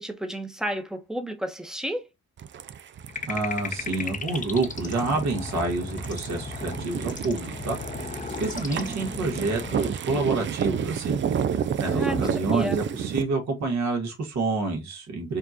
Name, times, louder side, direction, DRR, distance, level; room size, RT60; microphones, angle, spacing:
voice 1, 0.0-2.1 8.8-9.5 11.9-12.8, equal, ahead, 0.9 m, -32 dB
sound 1, 2.4-13.2, right 8 dB, 40° right, 0.4 m, -31 dB
sound 2, 3.1-9.9, left 4 dB, 25° left, 0.7 m, -36 dB
voice 2, 3.3-7.8 8.0-11.2 11.5-15.4, right 3 dB, 65° right, 1.7 m, -28 dB
4.4 x 2.5 x 2.8 m
cardioid pair, 90°, 30 cm